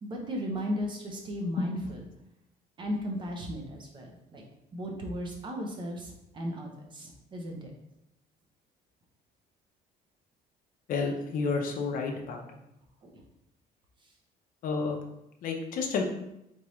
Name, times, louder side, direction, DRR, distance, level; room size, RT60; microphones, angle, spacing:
voice 1, 0.0-2.1 2.8-4.4 4.7-7.7 13.0-13.2, equal, 25° right, 1 dB, 0.7 m, -36 dB
voice 2, 10.9-12.4 14.6-15.0 15.4-16.0, left 4 dB, 50° left, 2 dB, 0.6 m, -30 dB
4.0 x 3.5 x 3.1 m, 0.83 s
cardioid pair, 175°, 18 cm